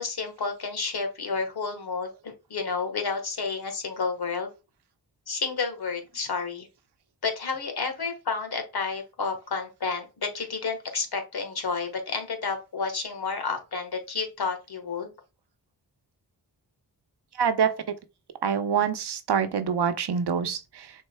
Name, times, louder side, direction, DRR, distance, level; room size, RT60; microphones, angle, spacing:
voice 1, 0.0-4.5 5.3-6.7 7.2-15.1, left 4 dB, 60° left, 1.4 m, -30 dB
voice 2, 17.4-17.7 18.4-20.9, right 7 dB, 65° right, 0.8 m, -25 dB
6.3 x 3.8 x 2.2 m
cardioid pair, 50°, 43 cm